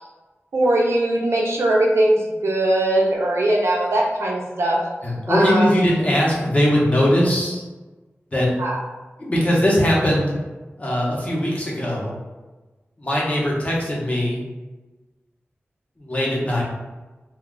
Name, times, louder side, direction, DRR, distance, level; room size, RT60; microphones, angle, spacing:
voice 1, 0.5-4.8 5.3-5.7 8.6-8.8, right 1 dB, 90° right, -1 dB, 0.6 m, -20 dB
voice 2, 5.0-7.6 8.3-8.5 9.2-10.3 10.8-12.2 13.0-14.4 16.0-16.6, equal, 30° left, -4 dB, 0.9 m, -20 dB
2.3 x 2.2 x 3.7 m, 1.2 s
wide cardioid pair, 70°, 4 cm